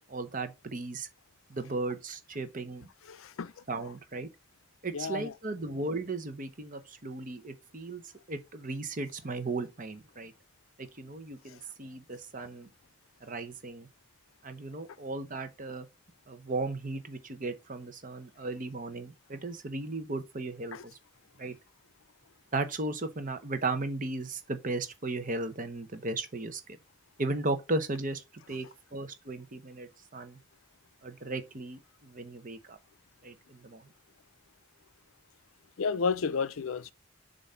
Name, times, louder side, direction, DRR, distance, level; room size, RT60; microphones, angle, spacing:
voice 1, 0.1-1.1 1.5-2.9 3.7-4.3 4.8-8.0 8.3-10.3 10.8-12.7 13.2-13.9 14.4-15.9 16.3-21.0 21.4-21.5 22.5-26.8 27.2-28.7 28.9-30.4 31.0-32.8 33.2-33.8, right 2 dB, 40° right, 0.9 m, -36 dB
voice 2, 3.1-3.5 4.9-5.3 20.7-20.8 35.8-36.9, left 5 dB, 80° left, 0.5 m, -31 dB
6.9 x 2.7 x 5.6 m
head